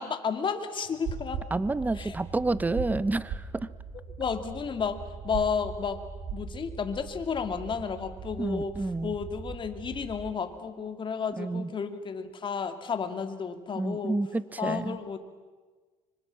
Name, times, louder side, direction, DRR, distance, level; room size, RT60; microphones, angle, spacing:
voice 1, 0.0-1.4 2.0-2.1 4.2-5.0 5.2-6.0 6.3-8.7 9.0-14.2 14.6-15.2, left 6 dB, 35° left, 8 dB, 2.3 m, -32 dB
sound 1, 0.8-2.2 2.5-3.0 3.2-3.5 5.3-5.5 6.2-6.5, right 6 dB, 65° right, 4.1 m, -37 dB
voice 2, 1.5-3.7 8.4-9.2 11.4-11.7 13.8-15.0, right 2 dB, 10° right, 16 dB, 0.8 m, -29 dB
sound 2, 1.6-10.3, right 4 dB, 40° right, 3.5 m, -43 dB
25.0 x 25.0 x 7.5 m, 1.4 s
cardioid pair, 115°, 14 cm